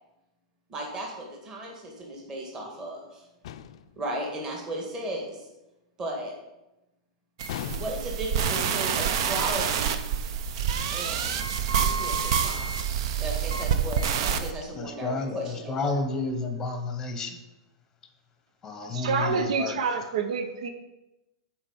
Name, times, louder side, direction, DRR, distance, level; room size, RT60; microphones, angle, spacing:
voice 1, 0.7-3.3 4.0-5.5 6.0-6.3 7.7-10.0 10.9-16.0, right 1 dB, 20° right, -1 dB, 1.8 m, -36 dB
sound 1, 3.4-4.0 7.5-8.3, left 10 dB, 60° left, 0.5 m, -38 dB
sound 2, 7.4-14.5, right 7 dB, 50° right, 0.7 m, -27 dB
voice 2, 14.7-17.4 18.6-19.8, left 3 dB, 15° left, 6 dB, 1.0 m, -31 dB
voice 3, 18.8-20.7, right 5 dB, 70° right, 8 dB, 1.1 m, -28 dB
8.8 x 4.8 x 7.2 m, 0.97 s
supercardioid pair, 165°, 4 cm